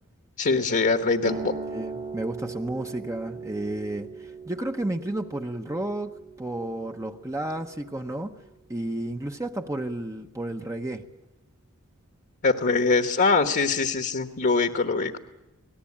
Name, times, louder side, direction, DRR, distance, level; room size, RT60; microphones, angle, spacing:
voice 1, 0.4-1.3 12.4-15.2, left 4 dB, 45° left, 6 dB, 1.2 m, -23 dB
sound 1, 1.2-8.4, right 4 dB, 35° right, 1.6 m, -40 dB
voice 2, 1.7-8.3 8.7-11.0, right 1 dB, 15° right, 4 dB, 0.9 m, -32 dB
25.0 x 19.0 x 8.6 m, 1.0 s
head